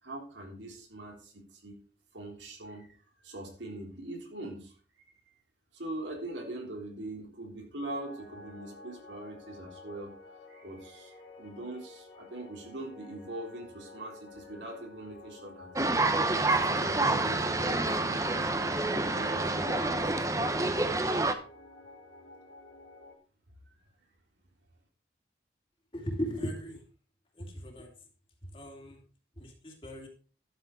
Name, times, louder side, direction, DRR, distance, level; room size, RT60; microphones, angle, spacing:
voice 1, 0.0-1.8 2.1-2.9 3.2-4.7 5.3-5.4 5.7-10.1 10.5-16.0 16.3-18.6 19.1-21.0, right 1 dB, 90° right, 1 dB, 3.6 m, -42 dB
sound 1, 7.9-23.2, left 2 dB, 80° left, 2.8 m, -51 dB
sound 2, 15.8-21.3, right 2 dB, 20° right, 0.8 m, -28 dB
voice 2, 25.9-26.8 27.4-27.9 28.5-29.0 29.4-30.1, equal, 30° left, 1 dB, 2.7 m, -37 dB
12.0 x 7.3 x 4.6 m, 0.39 s
head